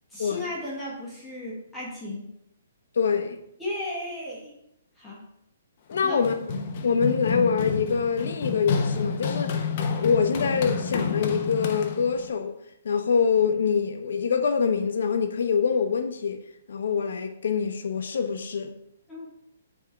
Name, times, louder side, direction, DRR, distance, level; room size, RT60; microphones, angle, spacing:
voice 1, 0.1-2.3 3.6-4.5 5.0-5.2 6.0-6.3 19.1-19.3, left 1 dB, 5° left, 1.5 m, -35 dB
voice 2, 2.9-3.4 5.9-6.4 6.8-9.6 10.0-12.5 12.8-16.4 16.7-18.7, left 6 dB, 70° left, 0.9 m, -25 dB
Run, 5.9-12.3, left 5 dB, 40° left, 0.7 m, -29 dB
5.9 x 3.7 x 5.9 m
hypercardioid pair, 165°, 0 cm